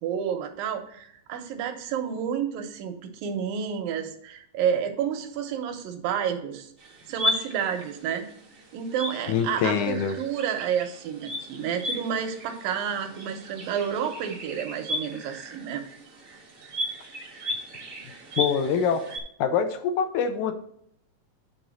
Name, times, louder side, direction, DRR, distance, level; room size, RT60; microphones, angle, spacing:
voice 1, 0.0-6.7 7.1-8.3 8.7-15.8, right 8 dB, 80° right, 5 dB, 2.6 m, -30 dB
sound 1, 6.8-19.2, left 1 dB, 45° right, 1.0 m, -35 dB
voice 2, 9.3-10.2 18.4-19.1 19.4-20.5, left 7 dB, 75° left, 8 dB, 2.0 m, -24 dB
9.2 x 3.8 x 6.2 m, 0.69 s
omnidirectional pair, 4.0 m